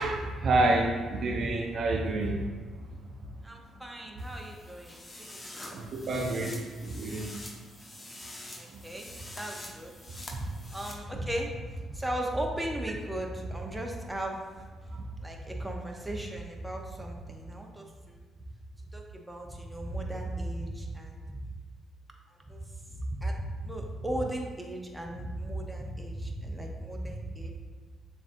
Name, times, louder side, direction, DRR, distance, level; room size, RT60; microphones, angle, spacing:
voice 1, 0.0-2.5 5.7-7.3, right 2 dB, 60° right, 1 dB, 0.5 m, -28 dB
voice 2, 3.4-5.9 8.6-9.1 9.3-9.9 10.7-14.6 15.2-18.2 18.9-21.4 22.3-27.5, right 1 dB, 10° right, 1 dB, 0.8 m, -36 dB
sound 1, 4.2-10.9, left 1 dB, 30° left, 0.9 m, -46 dB
6.9 x 2.7 x 2.6 m, 1.5 s
hypercardioid pair, 50°, 0 cm